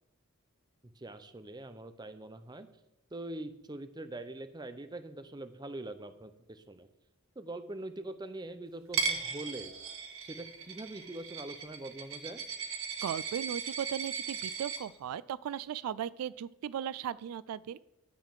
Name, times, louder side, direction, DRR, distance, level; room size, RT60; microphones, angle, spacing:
voice 1, 0.8-2.7 3.1-6.9 7.4-9.8 10.2-12.4, right 1 dB, 20° right, 10 dB, 0.6 m, -43 dB
Coin (dropping), 8.9-14.8, right 6 dB, 65° right, 1.2 m, -37 dB
voice 2, 13.0-17.8, right 9 dB, 85° right, 18 dB, 0.3 m, -37 dB
10.5 x 4.9 x 7.5 m, 0.88 s
head